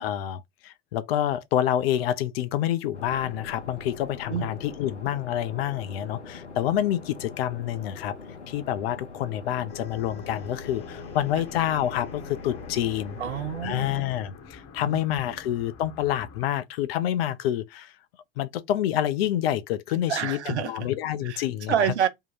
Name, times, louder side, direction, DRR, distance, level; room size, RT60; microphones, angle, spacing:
voice 1, 0.0-8.1 8.5-13.2 13.6-17.9 18.4-21.7, left 11 dB, 60° left, 0.6 m, -28 dB
sound 1, 2.9-14.0, left 4 dB, 85° left, 0.9 m, -42 dB
sound 2, 9.6-16.4, left 5 dB, 40° left, 1.0 m, -45 dB
voice 2, 13.2-14.1 14.8-15.0 20.1-20.7 21.2-21.4 21.7-22.1, right 9 dB, 75° right, 0.8 m, -27 dB
3.7 x 2.2 x 4.3 m
figure-of-eight pair, 75°, 34 cm